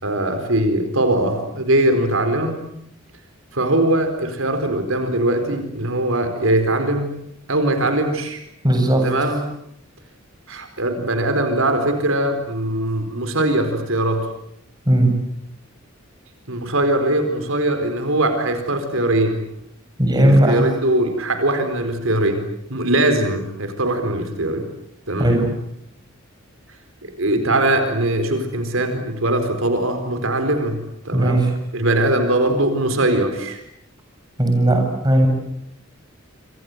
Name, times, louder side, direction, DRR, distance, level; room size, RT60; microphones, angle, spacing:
voice 1, 0.0-2.6 3.5-7.1 7.5-8.4 9.0-9.4 10.5-14.3 16.5-19.4 20.2-22.4 22.7-24.7 25.1-25.5 27.2-31.4 31.7-33.6, right 1 dB, 80° right, 7 dB, 4.5 m, -21 dB
voice 2, 8.6-9.3 14.9-15.1 20.0-20.6 25.2-25.5 31.1-31.5 34.4-35.3, right 1 dB, 20° right, 3 dB, 7.6 m, -17 dB
27.0 x 26.5 x 8.1 m, 0.72 s
head